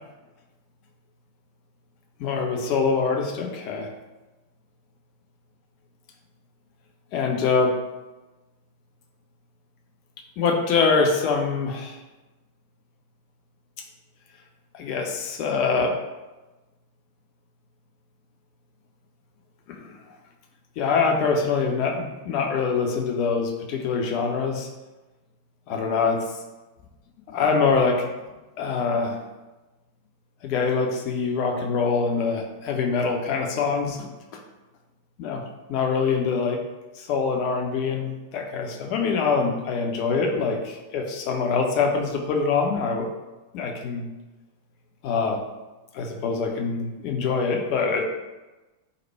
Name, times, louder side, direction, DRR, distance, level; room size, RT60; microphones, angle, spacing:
voice 1, 2.2-3.9 7.1-7.7 10.4-12.0 14.7-15.9 19.7-19.8 20.8-24.7 25.7-26.2 27.3-28.1 28.6-29.2 30.4-34.1 35.2-35.4 35.7-36.6 37.0-43.1 43.5-44.1 45.0-45.4 45.9-48.0, left 5 dB, 45° left, 2 dB, 0.5 m, -24 dB
3.2 x 2.1 x 4.2 m, 1.1 s
figure-of-eight pair, 90°, 0 cm